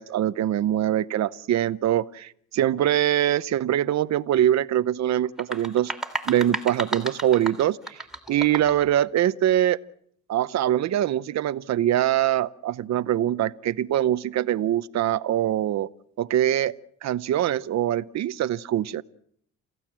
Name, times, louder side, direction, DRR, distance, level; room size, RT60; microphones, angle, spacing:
voice 1, 0.0-5.9 6.3-8.0 8.3-9.8 10.3-15.9 16.2-16.7 17.0-19.0, right 12 dB, 60° right, 14 dB, 0.8 m, -23 dB
sound 1, 5.2-8.9, right 2 dB, ahead, 3.1 m, -33 dB
28.5 x 15.5 x 7.5 m, 0.67 s
cardioid pair, 90°, 30 cm